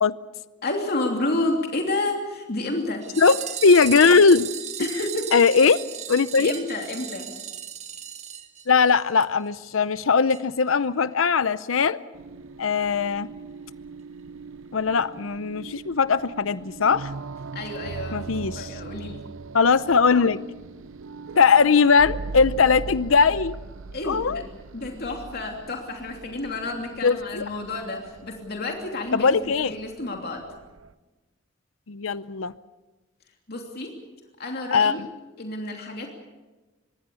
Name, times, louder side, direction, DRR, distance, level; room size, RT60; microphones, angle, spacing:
voice 1, 0.6-3.0 4.8-5.3 6.4-7.3 17.5-19.2 23.9-24.4 24.7-30.4 33.5-33.9 34.4-35.0 35.4-36.1, left 2 dB, 55° left, 2 dB, 3.0 m, -30 dB
sound 1, 3.0-9.2 9.5-9.6 9.8-9.9 10.3-10.4 10.7-10.8, right 9 dB, 35° right, 1.8 m, -36 dB
voice 2, 3.2-4.5 5.3-5.8 6.1-6.5 8.7-12.0 12.6-13.3 14.7-17.1 18.1-18.7 19.5-20.4 21.4-23.5 24.1-24.4 27.0-27.5 29.1-29.7 31.9-32.5 34.7-34.9, left 5 dB, 90° left, 15 dB, 0.7 m, -19 dB
sound 2, 12.1-30.9, right 4 dB, 80° right, 0.7 m, -40 dB
25.5 x 21.5 x 7.0 m, 1.2 s
head